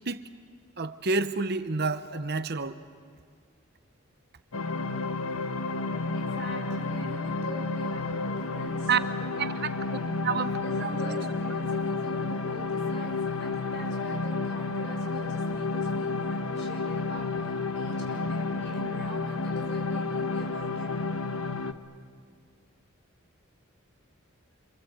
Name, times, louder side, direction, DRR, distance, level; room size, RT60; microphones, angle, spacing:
voice 1, 0.8-2.8 8.9-9.0 9.4-9.7 10.2-11.2, right 4 dB, 50° right, 11 dB, 0.9 m, -29 dB
sound 1, 4.5-21.7, left 3 dB, 80° left, 1.2 m, -31 dB
voice 2, 6.1-9.7 10.6-20.9, equal, 55° left, 1 dB, 6.6 m, -44 dB
27.0 x 27.0 x 8.2 m, 2.1 s
head